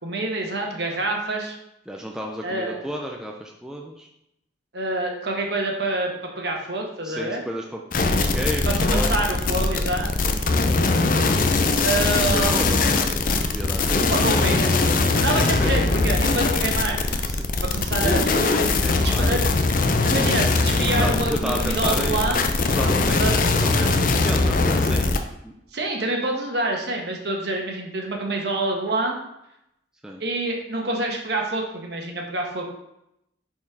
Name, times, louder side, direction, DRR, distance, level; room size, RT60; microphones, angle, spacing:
voice 1, 0.0-1.5 2.4-2.8 4.7-7.4 8.7-10.1 11.8-12.9 14.1-17.0 17.6-18.2 18.5-18.7 19.0-19.4 20.0-22.4 23.2-23.4 25.7-29.2 30.2-32.7, right 2 dB, 60° right, 1 dB, 1.3 m, -27 dB
voice 2, 1.9-4.1 7.0-9.7 10.2-11.0 12.2-14.2 15.3-15.7 17.2-17.4 18.0-19.5 21.0-22.2 22.6-25.2 25.4-25.5 30.0-30.2, equal, 5° right, -1 dB, 0.5 m, -32 dB
sound 1, 7.9-25.2, left 3 dB, 45° left, 0.5 m, -21 dB
5.8 x 4.5 x 4.7 m, 0.82 s
head